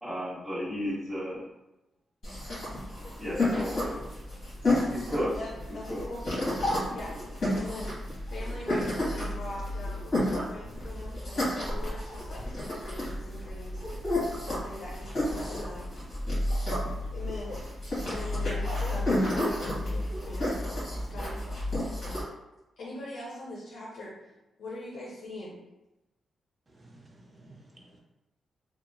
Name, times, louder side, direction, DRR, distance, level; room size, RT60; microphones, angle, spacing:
voice 1, 0.0-1.4 3.2-4.0 4.7-5.4 5.9-6.0, equal, ahead, -11 dB, 1.1 m, -33 dB
bunny right ear, 2.2-22.2, left 1 dB, 55° left, 1.4 m, -31 dB
voice 2, 5.7-6.2 6.9-7.1 7.5-13.8 14.4-15.9 17.1-17.6 18.0-20.6 20.9-21.5 22.8-24.1 24.6-25.6, left 2 dB, 75° left, -5 dB, 0.6 m, -42 dB
voice 3, 26.7-28.0, right 2 dB, 20° right, -2 dB, 0.5 m, -54 dB
2.8 x 2.0 x 2.6 m, 0.96 s
wide cardioid pair, 175°, 0 cm